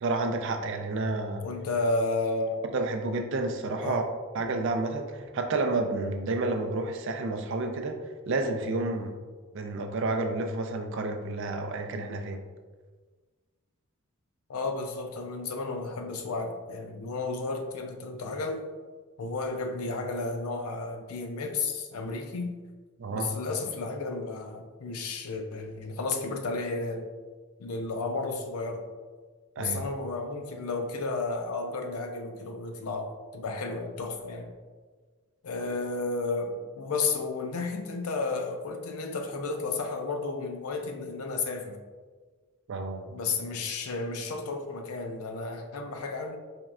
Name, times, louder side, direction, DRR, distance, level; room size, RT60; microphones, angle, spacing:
voice 1, 0.0-1.4 2.7-4.0 4.3-8.0 8.3-9.2 9.5-12.4 23.0-23.3 29.6-29.8 42.7-43.1, right 2 dB, 60° right, 5 dB, 0.4 m, -30 dB
voice 2, 1.4-2.6 3.8-4.0 14.5-18.6 19.2-22.6 23.1-27.1 27.6-28.8 29.6-34.5 35.4-41.8 43.1-46.4, left 3 dB, 90° left, 5 dB, 0.5 m, -32 dB
4.4 x 3.1 x 2.4 m, 1.4 s
head